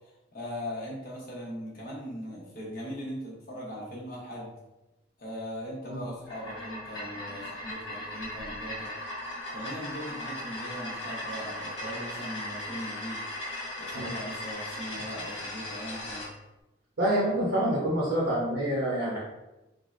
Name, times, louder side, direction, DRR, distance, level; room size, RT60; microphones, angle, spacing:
voice 1, 0.3-4.5 5.2-8.9 9.5-13.2 13.8-16.3, equal, 50° left, -5 dB, 0.9 m, -39 dB
sound 1, 6.2-16.3, left 1 dB, 65° left, 1.3 m, -38 dB
voice 2, 17.0-19.2, right 1 dB, 60° right, -6 dB, 0.7 m, -27 dB
3.4 x 2.1 x 2.5 m, 1.0 s
head